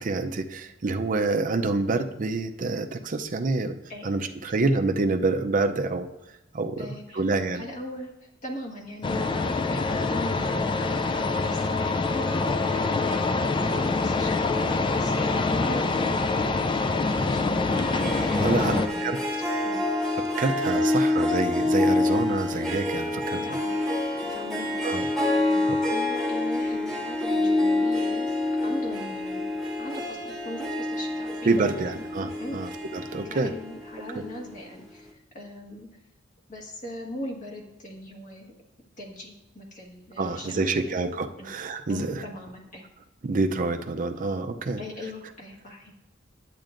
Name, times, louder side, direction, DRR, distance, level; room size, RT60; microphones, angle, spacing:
voice 1, 0.0-3.7 4.0-6.1 6.5-7.6 18.4-19.2 20.4-23.6 24.8-25.1 31.5-33.5 40.2-42.2 43.2-44.8, right 3 dB, 45° right, 7 dB, 0.5 m, -27 dB
voice 2, 3.9-4.3 6.8-7.2 7.5-17.4 18.4-19.3 19.6-19.8 20.7-20.9 21.9-22.0 23.3-23.8 24.2-28.3 28.6-29.5 29.8-31.5 31.8-32.0 32.4-32.6 32.9-33.0 33.2-35.9 36.5-38.5 39.0-41.0 41.4-41.5 41.9-42.8 44.8-45.9, left 1 dB, 40° left, -1 dB, 1.5 m, -40 dB
sound 1, 9.0-18.9, left 3 dB, 25° left, 0.3 m, -25 dB
Harp, 17.7-34.5, left 2 dB, ahead, 1.2 m, -27 dB
10.5 x 8.4 x 2.5 m, 0.94 s
head